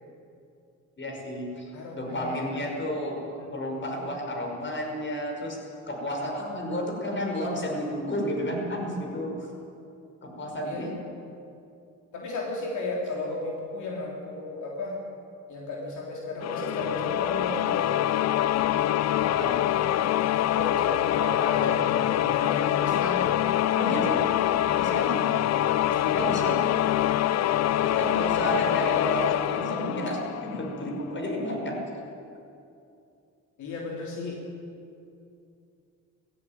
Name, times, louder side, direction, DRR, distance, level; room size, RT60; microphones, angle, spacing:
voice 1, 1.0-5.6 5.9-9.5 10.2-10.9 19.2-19.7 23.7-24.2 24.8-25.2 26.1-26.6 27.8-31.8, equal, 40° left, 1 dB, 5.6 m, -31 dB
voice 2, 1.7-2.6 3.4-3.5 10.6-10.9 12.1-15.0 15.5-17.9 20.5-23.3 24.7-24.9 25.8-26.2 33.6-34.4, left 2 dB, 75° left, -1 dB, 3.2 m, -34 dB
sound 1, 16.4-31.0, left 12 dB, 60° left, 0.6 m, -25 dB
18.0 x 16.0 x 9.5 m, 2.6 s
cardioid pair, 90°, 30 cm